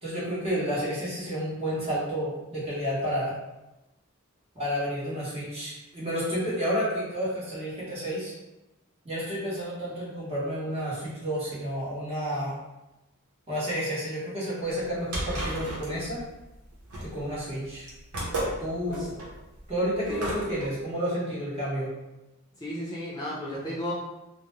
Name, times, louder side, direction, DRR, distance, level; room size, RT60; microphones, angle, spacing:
voice 1, 0.0-3.4 4.5-8.3 9.0-12.5 13.5-16.2 17.0-17.9 18.6-19.2 19.7-21.9, equal, 30° right, -9 dB, 1.1 m, -30 dB
sound 1, 14.7-20.6, right 1 dB, 90° right, 0.8 m, -34 dB
voice 2, 22.6-23.9, equal, 20° left, -9 dB, 0.6 m, -34 dB
2.5 x 2.1 x 3.1 m, 0.99 s
head